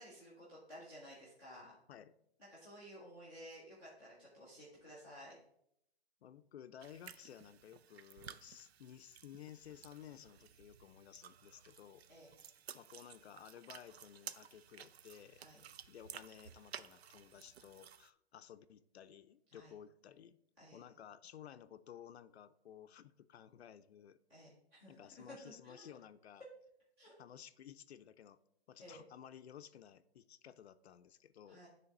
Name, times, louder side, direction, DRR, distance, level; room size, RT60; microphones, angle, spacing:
voice 1, 0.0-1.7 2.5-5.3 12.1-12.3 15.3-15.6 19.5-19.7 20.6-20.9 24.3-25.9 27.0-27.1 28.8-29.0 31.5-31.7, equal, 5° right, -10 dB, 0.5 m, -55 dB
voice 2, 6.2-12.0 12.7-15.4 15.9-20.4 20.7-24.2 24.9-26.4 27.2-28.4 28.7-31.6, left 9 dB, 75° left, 12 dB, 0.5 m, -55 dB
sound 1, 6.8-18.1, right 9 dB, 75° right, 0.5 m, -55 dB
10.0 x 3.4 x 4.1 m, 0.77 s
hypercardioid pair, 170°, 32 cm